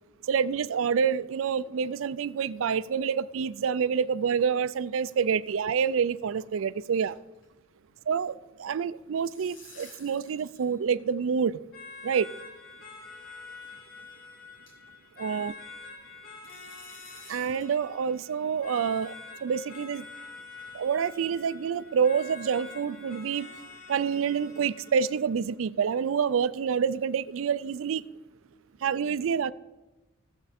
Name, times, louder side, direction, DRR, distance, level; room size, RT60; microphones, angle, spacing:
voice 1, 0.3-7.2 8.1-11.6 12.0-12.3 15.2-15.5 17.3-19.1 19.4-20.0 20.7-23.5 23.9-28.0 28.8-29.5, right 6 dB, 75° right, 17 dB, 0.4 m, -27 dB
sound 1, 4.5-5.2 5.4-5.6 5.9-6.0 6.4-6.6 6.8-7.7 7.9-8.1 9.0-10.7 11.0-11.1 12.0-12.1 12.9-13.1 13.6-13.7 14.1-14.2 14.7-14.9 16.4-17.7, left 3 dB, 65° left, 2.7 m, -52 dB
sound 2, 11.7-25.3, left 4 dB, 50° left, 2.1 m, -47 dB
15.0 x 7.7 x 4.2 m, 1.1 s
head